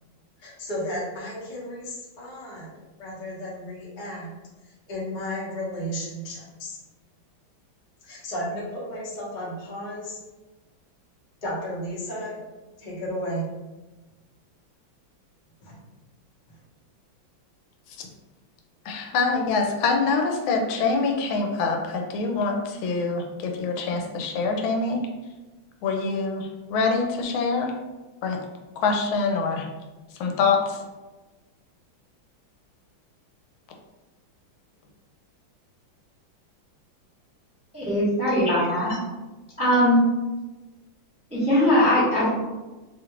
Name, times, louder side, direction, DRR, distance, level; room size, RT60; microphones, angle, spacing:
voice 1, 0.4-2.7 3.0-4.3 4.9-6.8 8.0-10.2 11.4-12.4 12.8-13.5 15.6-15.8, equal, 40° left, -6 dB, 0.7 m, -33 dB
voice 2, 18.9-25.0 25.8-27.7 28.2-28.4 28.8-29.7 30.2-30.8, left 4 dB, 85° left, 3 dB, 1.4 m, -25 dB
voice 3, 37.7-39.0 39.6-40.0 41.3-42.3, left 1 dB, 5° right, -9 dB, 0.7 m, -20 dB
3.3 x 2.5 x 2.9 m, 1.2 s
omnidirectional pair, 2.2 m